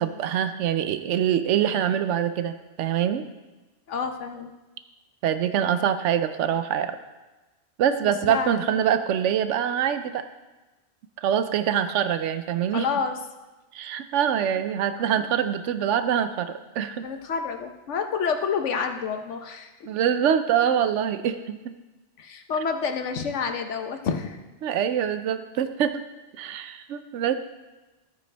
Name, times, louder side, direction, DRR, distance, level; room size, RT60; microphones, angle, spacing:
voice 1, 0.0-3.2 5.2-7.0 7.8-10.2 11.2-12.9 13.7-17.0 19.9-21.6 24.6-26.0 26.4-27.3, right 9 dB, 85° right, 10 dB, 0.9 m, -24 dB
voice 2, 3.9-4.5 8.0-8.9 12.7-13.2 14.9-15.3 17.0-19.7 22.2-24.4, left 6 dB, 85° left, 6 dB, 1.2 m, -29 dB
13.5 x 9.2 x 3.4 m, 1.1 s
omnidirectional pair, 1.2 m